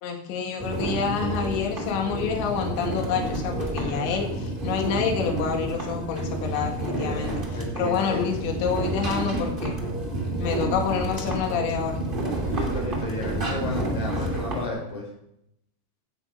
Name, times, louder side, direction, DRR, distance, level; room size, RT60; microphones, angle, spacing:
voice 1, 0.0-9.8 10.4-12.0, left 6 dB, 70° left, 2 dB, 4.1 m, -28 dB
sound 1, 0.6-14.7, right 2 dB, 25° right, 1.1 m, -29 dB
voice 2, 6.9-8.2 12.5-15.0, left 2 dB, 40° left, -3 dB, 6.6 m, -33 dB
16.5 x 9.9 x 5.5 m, 0.78 s
omnidirectional pair, 5.5 m